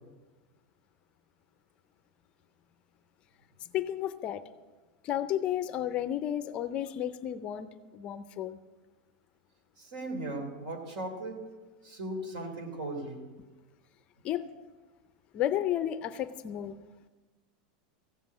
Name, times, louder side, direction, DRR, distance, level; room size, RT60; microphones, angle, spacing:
voice 1, 3.7-4.4 5.0-8.6 14.2-14.5 15.3-16.8, left 11 dB, 25° left, 12 dB, 0.5 m, -32 dB
voice 2, 9.8-11.4 11.8-13.2, right 2 dB, 65° right, 5 dB, 3.3 m, -37 dB
15.0 x 7.5 x 8.2 m, 1.2 s
supercardioid pair, 175°, 4 cm